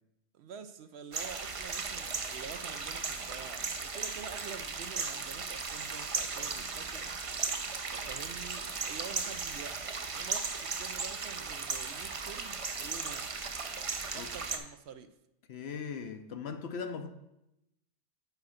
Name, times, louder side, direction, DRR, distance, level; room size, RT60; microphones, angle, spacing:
voice 1, 0.3-7.1 7.9-13.3 14.1-15.2, right 7 dB, 65° right, 0.8 m, -47 dB
sound 1, 1.1-14.6, right 4 dB, 40° right, 0.4 m, -36 dB
voice 2, 15.5-17.1, left 5 dB, 65° left, 0.8 m, -39 dB
6.8 x 4.7 x 6.3 m
omnidirectional pair, 1.3 m